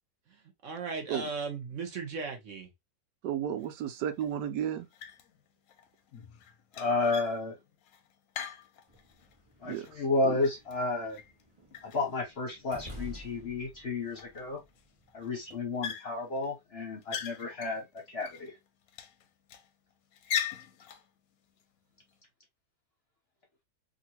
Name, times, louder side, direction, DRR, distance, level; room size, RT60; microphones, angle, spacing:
voice 1, 0.3-2.7, right 4 dB, 55° right, 1.1 m, -37 dB
voice 2, 3.2-4.9 9.6-9.9 10.2-10.4, right 9 dB, 85° right, 1.2 m, -33 dB
sound 1, 3.6-3.7 4.2-4.6 4.9-5.4 5.7-9.3 9.7-11.4 11.7-12.7 13.3-13.4 13.6-13.7 14.1-14.8 15.1-15.3 15.8-16.5 16.8-18.5 18.9-19.7 20.1-21.1, left 9 dB, 70° left, 0.9 m, -40 dB
voice 3, 6.7-7.6 9.6-11.2 11.8-14.6 15.1-18.5, left 3 dB, 50° left, 0.8 m, -32 dB
sound 2, 8.9-15.6, left 1 dB, 25° right, 1.1 m, -51 dB
2.9 x 2.7 x 2.7 m
omnidirectional pair, 1.8 m